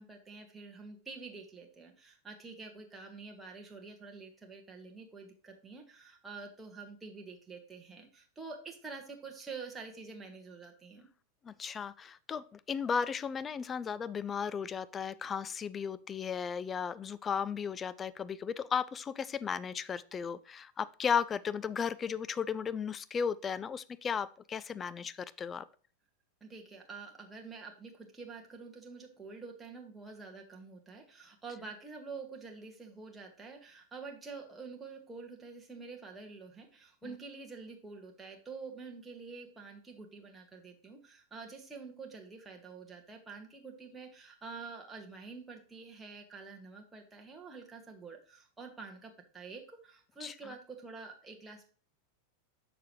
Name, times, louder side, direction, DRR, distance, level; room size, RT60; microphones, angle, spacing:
voice 1, 0.0-11.1 26.4-51.7, right 4 dB, 10° right, 0 dB, 1.4 m, -47 dB
voice 2, 11.4-25.7 50.2-50.5, left 6 dB, 20° left, 16 dB, 0.4 m, -35 dB
6.8 x 6.6 x 3.0 m, 0.41 s
figure-of-eight pair, 90°, 0 cm